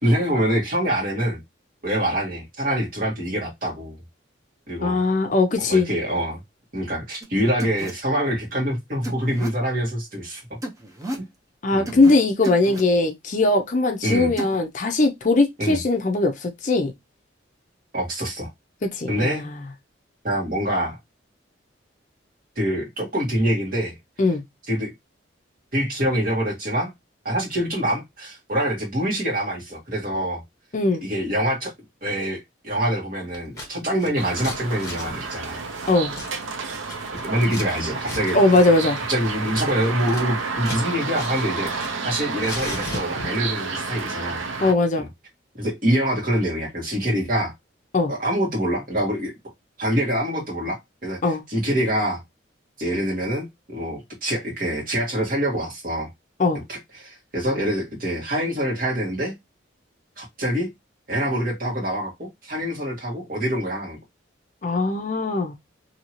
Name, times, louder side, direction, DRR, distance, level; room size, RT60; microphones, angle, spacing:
voice 1, 0.0-1.4 1.8-4.0 4.7-5.0 5.7-6.4 6.7-10.6 11.7-12.0 14.0-14.3 15.6-15.8 17.9-18.5 19.1-19.4 20.2-21.0 22.5-24.0 24.7-24.9 25.7-26.9 27.2-30.4 31.0-31.7 32.0-35.6 37.2-38.4 39.1-44.4 45.0-45.1 45.6-47.5 48.1-49.3 49.8-52.2 52.8-56.1 56.7-59.3 60.2-60.7 61.1-64.0, equal, 45° right, 1.5 m, -25 dB
voice 2, 4.8-5.9 11.6-16.9 18.9-19.5 24.2-24.4 30.7-31.0 35.9-36.1 38.3-39.0 44.6-45.1 47.9-48.1 51.2-51.4 56.4-56.6 64.6-65.6, left 2 dB, 40° left, 0.5 m, -20 dB
sound 1, 7.2-7.3 7.6-7.9 9.0-9.5 10.6-11.2 11.9-12.1 12.4-12.8 14.4-14.6, right 1 dB, 15° right, 0.5 m, -32 dB
Scissors, 33.3-33.7 34.0-37.7 38.0-38.2 38.5-38.7 39.0-40.9 41.1-42.1 42.4-43.5, left 1 dB, 20° left, 1.4 m, -36 dB
sound 2, 34.2-44.7, right 4 dB, 85° right, 0.6 m, -30 dB
2.7 x 2.7 x 2.9 m
head